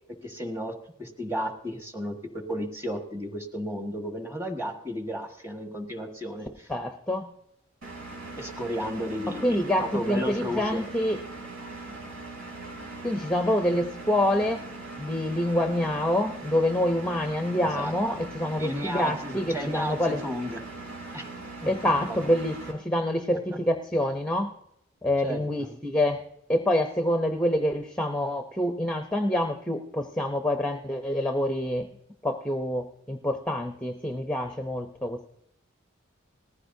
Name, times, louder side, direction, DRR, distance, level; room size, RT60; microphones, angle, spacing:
voice 1, 0.2-6.7 8.4-10.8 17.6-17.9 18.6-20.0 20.2-20.6 21.1-21.2 21.6-21.7 22.1-22.3 25.2-25.8, equal, 10° right, 4 dB, 1.5 m, -33 dB
voice 2, 6.7-7.3 9.3-11.2 13.0-14.6 15.0-20.2 21.6-24.5 25.0-26.2 26.5-31.9 32.2-35.3, left 1 dB, 5° left, 4 dB, 0.7 m, -26 dB
Engine, 7.8-22.7, right 2 dB, 80° right, 4.1 m, -41 dB
19.0 x 15.0 x 2.7 m, 0.74 s
head